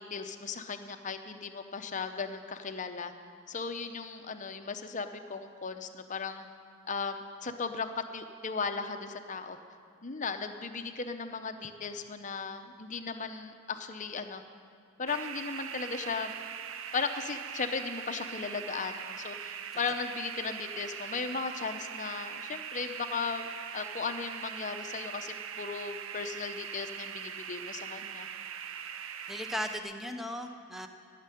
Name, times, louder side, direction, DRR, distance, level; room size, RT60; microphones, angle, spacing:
voice 1, 0.0-3.1 3.5-6.5 6.8-9.6 10.0-14.4 15.0-16.3 16.9-23.5 23.7-28.3, left 5 dB, 35° left, 7 dB, 0.7 m, -36 dB
sound 1, 15.1-29.8, right 8 dB, 70° right, 0.5 m, -41 dB
voice 2, 29.3-30.9, left 1 dB, ahead, 5 dB, 0.7 m, -37 dB
13.5 x 6.7 x 10.0 m, 2.3 s
head